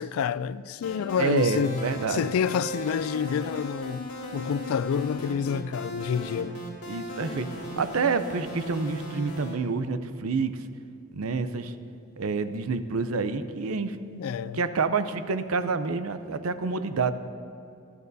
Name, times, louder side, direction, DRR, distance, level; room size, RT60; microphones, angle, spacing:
voice 1, 0.0-6.6 14.1-14.6, left 7 dB, 70° left, 0.3 m, -28 dB
sound 1, 0.8-9.5, equal, 85° left, 1.9 m, -37 dB
voice 2, 1.2-2.3 6.9-7.5 7.8-10.5 11.1-11.7 12.2-14.0 14.6-17.1, right 4 dB, 75° right, 0.6 m, -28 dB
18.5 x 12.5 x 2.7 m
head